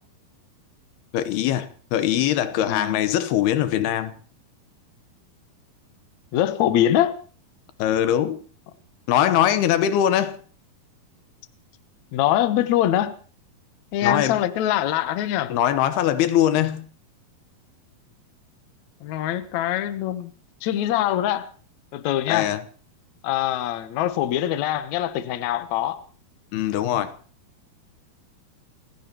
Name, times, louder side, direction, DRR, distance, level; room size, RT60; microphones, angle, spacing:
voice 1, 1.1-4.2 7.8-8.4 9.1-10.4 14.0-14.4 15.5-16.9 22.3-22.6 26.5-27.1, left 11 dB, 85° left, 3.0 m, -22 dB
voice 2, 2.6-3.0 6.3-7.2 12.1-13.2 13.9-15.5 19.0-20.3 20.6-21.5 21.9-22.5 23.2-26.0, left 12 dB, 70° left, 1.8 m, -23 dB
29.0 x 16.0 x 3.0 m
omnidirectional pair, 4.5 m